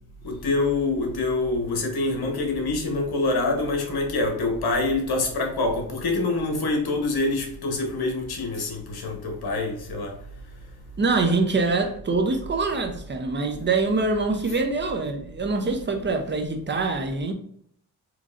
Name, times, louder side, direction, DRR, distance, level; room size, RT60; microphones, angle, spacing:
voice 1, 0.2-10.1, left 2 dB, 60° left, 1.2 m, -25 dB
voice 2, 11.0-17.3, right 3 dB, 25° right, 0.7 m, -24 dB
3.8 x 3.1 x 2.5 m
cardioid pair, 75°, 41 cm